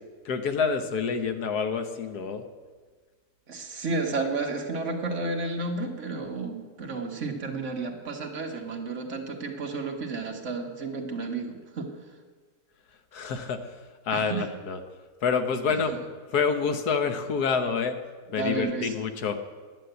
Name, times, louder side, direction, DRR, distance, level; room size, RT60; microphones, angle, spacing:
voice 1, 0.2-2.4 13.1-13.7 14.0-14.8 15.2-15.9 16.3-18.0 18.3-19.4, left 5 dB, 70° left, 7 dB, 1.5 m, -27 dB
voice 2, 3.5-11.9 14.1-14.5 15.7-16.0 18.4-18.9, right 3 dB, 50° right, 2 dB, 1.7 m, -32 dB
11.0 x 9.1 x 8.0 m, 1.5 s
omnidirectional pair, 1.7 m